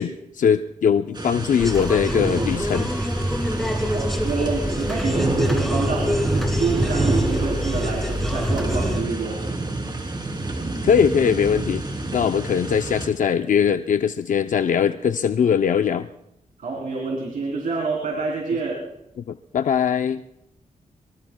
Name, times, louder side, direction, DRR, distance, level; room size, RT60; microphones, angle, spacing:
voice 1, 0.0-2.9 10.8-11.8 12.1-16.1 19.3-20.2, left 7 dB, 70° left, 8 dB, 0.5 m, -21 dB
sound 1, 1.1-13.1, right 2 dB, 35° right, 3.1 m, -28 dB
sound 2, 1.6-9.0, equal, ahead, 2.3 m, -26 dB
voice 2, 3.9-6.2 6.5-9.4 16.6-18.8, right 4 dB, 90° right, -1 dB, 3.2 m, -27 dB
24.0 x 23.0 x 2.2 m, 0.82 s
wide cardioid pair, 90°, 14 cm